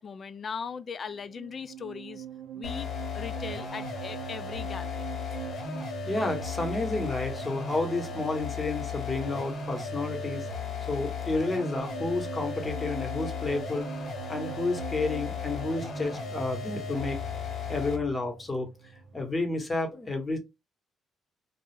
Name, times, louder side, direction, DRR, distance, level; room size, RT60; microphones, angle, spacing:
voice 1, 0.0-2.3 2.5-5.4, left 6 dB, 45° left, 0.3 m, -39 dB
sound 1, 1.1-19.5, right 9 dB, 90° right, 0.4 m, -44 dB
sound 2, 2.6-18.1, left 5 dB, 60° left, 0.7 m, -36 dB
voice 2, 6.1-10.5 10.9-13.9 14.3-17.2 17.7-18.7 19.1-20.4, left 3 dB, 25° left, 0.9 m, -31 dB
2.2 x 2.0 x 3.1 m
cardioid pair, 90°, 0 cm